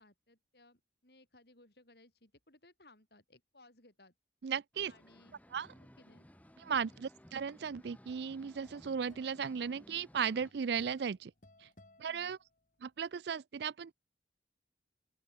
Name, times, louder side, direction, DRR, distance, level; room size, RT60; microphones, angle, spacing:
voice 1, 0.0-4.1 4.9-5.4 5.7-6.3 6.7-7.0 12.0-12.4, left 2 dB, 65° left, 6.8 m, -63 dB
voice 2, 4.4-4.9 5.5-5.7 6.6-11.3 12.0-12.4 12.8-13.9, right 7 dB, 70° right, 0.4 m, -36 dB
sound 1, 4.7-10.5, equal, 10° left, 2.1 m, -59 dB
sound 2, 7.5-12.9, left 2 dB, 45° left, 2.4 m, -64 dB
open air
head